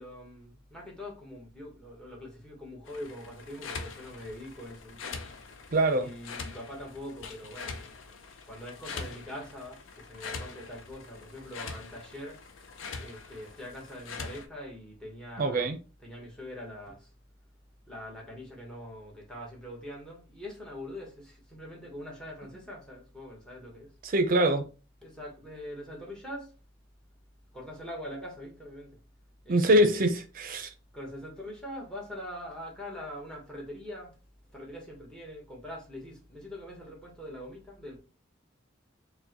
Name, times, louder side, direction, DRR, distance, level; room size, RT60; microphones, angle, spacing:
voice 1, 0.0-5.2 6.0-7.8 8.5-12.4 13.0-15.7 16.0-17.1 17.9-23.9 25.0-26.5 27.5-29.0 29.4-30.1 30.9-34.1 34.5-38.0, left 1 dB, 5° left, 1.1 m, -43 dB
sound 1, 2.9-14.5, left 4 dB, 85° left, 0.5 m, -43 dB
voice 2, 5.7-6.1 15.4-15.8 24.0-24.6 29.5-30.7, right 1 dB, 45° right, 0.5 m, -24 dB
4.5 x 2.2 x 2.8 m
head